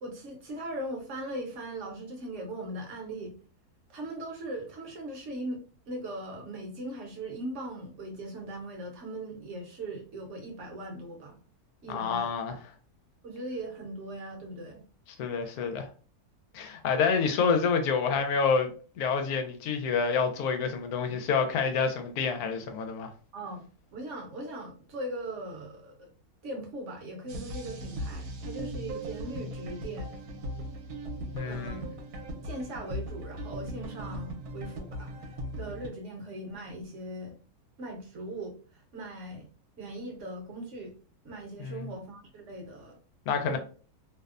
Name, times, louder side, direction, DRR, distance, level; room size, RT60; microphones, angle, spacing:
voice 1, 0.0-3.4 3.9-11.4 11.8-12.6 13.2-14.8 23.3-23.6 23.9-26.1 26.4-30.1 31.4-31.9 32.4-37.4 37.8-39.5 39.8-40.9 41.2-43.0 43.4-43.6, right 1 dB, 60° right, 0.9 m, -39 dB
voice 2, 11.9-12.5 15.2-15.9 16.5-18.7 19.0-23.1 31.3-31.8 41.6-41.9 43.3-43.6, left 5 dB, 80° left, 1.1 m, -28 dB
sound 1, 27.3-35.9, equal, 85° right, 1.1 m, -38 dB
2.7 x 2.0 x 2.3 m
omnidirectional pair, 1.6 m